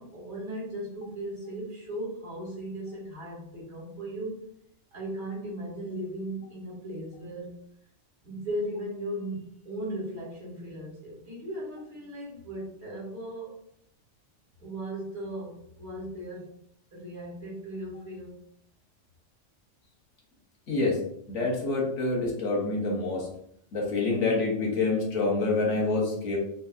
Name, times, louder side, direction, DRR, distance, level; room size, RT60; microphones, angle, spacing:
voice 1, 0.0-4.4 4.9-7.6 8.2-13.5 14.6-16.5 16.9-18.4, right 1 dB, 65° right, -6 dB, 2.0 m, -37 dB
voice 2, 20.7-21.0 21.3-23.3 23.7-26.4, left 3 dB, 90° left, -2 dB, 1.3 m, -27 dB
3.3 x 3.1 x 2.4 m, 0.71 s
omnidirectional pair, 1.2 m